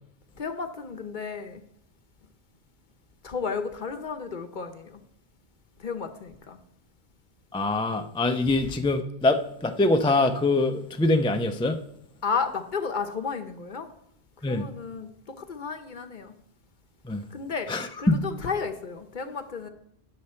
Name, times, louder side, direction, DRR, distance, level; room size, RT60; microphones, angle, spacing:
voice 1, 0.4-1.6 3.2-5.0 5.8-6.6 12.2-13.9 14.5-16.3 17.3-17.7 18.0-19.7, left 5 dB, 50° left, 0.9 m, -33 dB
voice 2, 7.5-11.8 14.4-14.6 17.0-17.2 17.7-18.3, left 2 dB, 5° left, 0.4 m, -24 dB
9.8 x 6.7 x 4.3 m
omnidirectional pair, 1.1 m